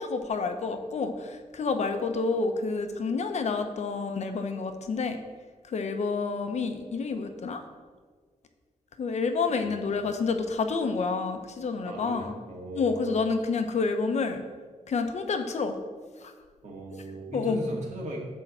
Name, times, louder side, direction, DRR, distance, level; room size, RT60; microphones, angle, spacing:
voice 1, 0.0-5.2 5.7-7.6 9.0-12.3 12.7-14.4 14.9-15.8 16.2-16.3 17.3-17.6, left 4 dB, 60° left, 6 dB, 0.9 m, -29 dB
voice 2, 11.9-13.2 16.6-18.2, right 1 dB, 65° right, -2 dB, 2.2 m, -39 dB
11.0 x 3.7 x 7.5 m, 1.5 s
wide cardioid pair, 140°, 13 cm